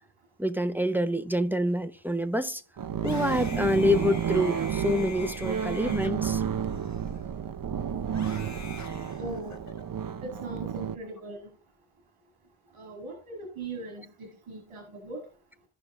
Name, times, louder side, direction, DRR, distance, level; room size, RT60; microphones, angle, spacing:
voice 1, 0.4-2.6 3.0-6.4, left 1 dB, 5° right, 0.8 m, -27 dB
sound 1, 2.8-11.0, right 8 dB, 45° right, 0.6 m, -31 dB
Screaming, 2.9-7.4 8.1-9.8, left 5 dB, 35° left, 1.3 m, -46 dB
voice 2, 9.2-9.6 10.2-11.5 12.7-15.2, right 2 dB, 90° right, 2.2 m, -39 dB
15.0 x 5.7 x 2.4 m
wide cardioid pair, 90°, 50 cm